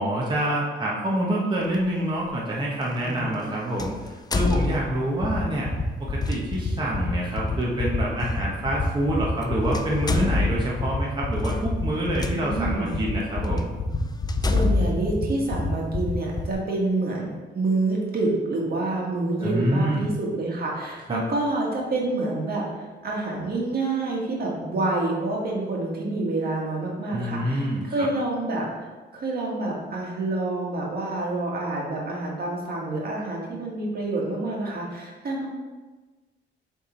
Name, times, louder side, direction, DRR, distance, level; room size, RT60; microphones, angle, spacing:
voice 1, 0.0-5.7 6.0-13.7 19.4-20.1 21.1-21.2 27.1-28.1, right 1 dB, 25° right, -5 dB, 1.2 m, -26 dB
sound 1, 1.7-1.9 3.8-5.3 6.2-6.4 8.3-8.4 9.3-9.4 9.7-12.3 13.0-13.1 13.6-13.7 14.3-16.1, left 3 dB, 20° left, 0.4 m, -26 dB
voice 2, 3.0-3.7 12.2-13.0 14.4-28.9 29.1-35.5, right 2 dB, 50° right, -2 dB, 1.8 m, -28 dB
sound 2, 5.2-16.5, left 6 dB, 40° left, 1.0 m, -28 dB
6.8 x 3.6 x 4.4 m, 1.3 s
cardioid pair, 90°, 20 cm